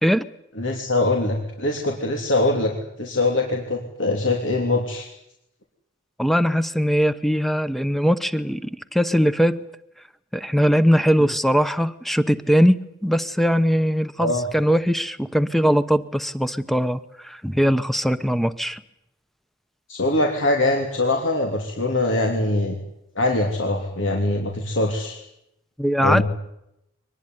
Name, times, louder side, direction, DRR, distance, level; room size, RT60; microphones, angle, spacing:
voice 1, 0.6-2.7 3.0-5.1 11.2-11.3 14.2-14.4 19.9-22.8 23.1-25.2 26.0-26.2, left 2 dB, 80° left, 2 dB, 3.3 m, -22 dB
voice 2, 6.2-9.6 10.3-18.8 25.8-26.2, equal, ahead, 13 dB, 1.0 m, -20 dB
23.5 x 20.0 x 9.7 m, 0.82 s
head